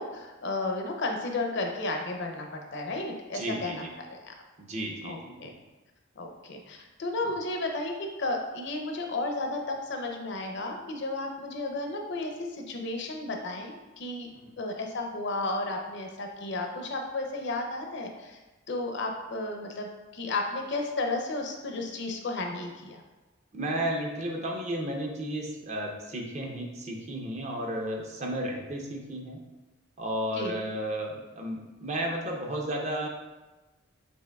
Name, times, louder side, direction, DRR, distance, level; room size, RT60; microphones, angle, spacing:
voice 1, 0.0-4.3 5.0-5.5 6.2-7.9 8.2-14.3 14.6-18.4 18.7-19.9 20.1-23.0 30.4-30.6, left 2 dB, 60° left, 3 dB, 0.5 m, -33 dB
voice 2, 3.3-3.9 4.6-5.5 14.3-14.4 23.5-29.4 30.0-33.1, right 1 dB, 35° right, 0 dB, 0.6 m, -33 dB
6.1 x 2.9 x 2.3 m, 1.1 s
head